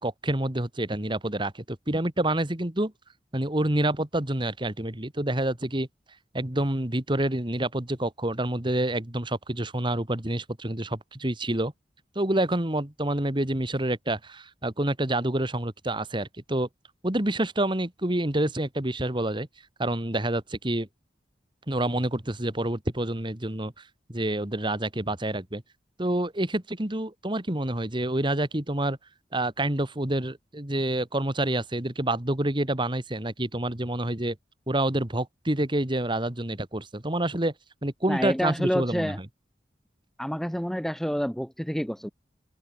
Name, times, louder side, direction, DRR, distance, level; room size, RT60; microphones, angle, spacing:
voice 1, 0.0-2.9 3.3-5.9 6.3-11.7 12.2-16.7 17.0-19.5 19.8-20.9 21.7-23.7 24.1-25.6 26.0-29.0 29.3-34.4 34.7-37.5 37.8-39.1, right 1 dB, 30° right, 2.1 m, -28 dB
voice 2, 38.1-39.2 40.2-42.1, equal, ahead, 0.9 m, -28 dB
head